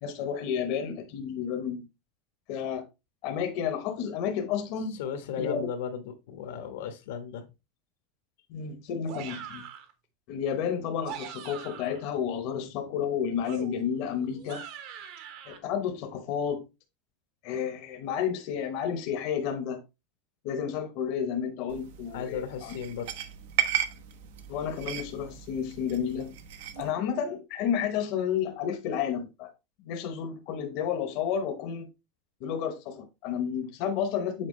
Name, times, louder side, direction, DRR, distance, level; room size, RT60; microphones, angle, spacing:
voice 1, 0.0-1.9 2.5-2.8 3.2-5.0 5.4-5.7 8.5-9.6 10.3-14.6 15.5-16.6 17.4-19.8 20.4-22.7 24.5-26.3 26.8-29.5 29.8-31.9 32.4-34.5, left 8 dB, 50° left, 0.9 m, -31 dB
voice 2, 4.9-7.5 22.1-23.1, left 7 dB, 80° left, 1.3 m, -35 dB
sound 1, 9.1-9.9 10.9-12.1 13.5-15.6, right 8 dB, 50° right, 1.1 m, -42 dB
Fork On Plate, 21.7-26.9, right 11 dB, 75° right, 0.8 m, -35 dB
7.4 x 4.4 x 3.1 m
supercardioid pair, 165°, 0 cm